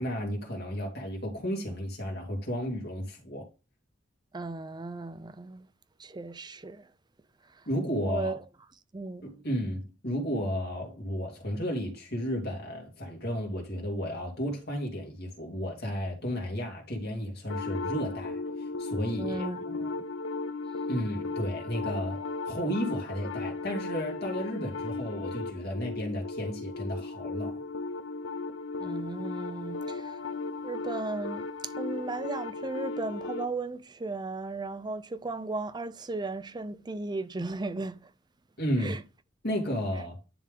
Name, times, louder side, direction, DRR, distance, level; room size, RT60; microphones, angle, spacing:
voice 1, 0.0-3.5 7.7-8.3 9.2-18.4 18.8-19.5 20.9-27.6 38.6-39.0 39.4-40.2, equal, 55° left, 2.2 m, -33 dB
voice 2, 4.3-5.7 6.0-6.9 8.0-8.4 8.9-9.3 19.2-20.0 28.8-30.2 30.6-31.5 31.8-38.1 38.8-39.0, right 3 dB, 20° right, 0.5 m, -36 dB
sound 1, 17.5-33.5, left 3 dB, 85° left, 0.7 m, -36 dB
10.0 x 3.6 x 3.5 m
head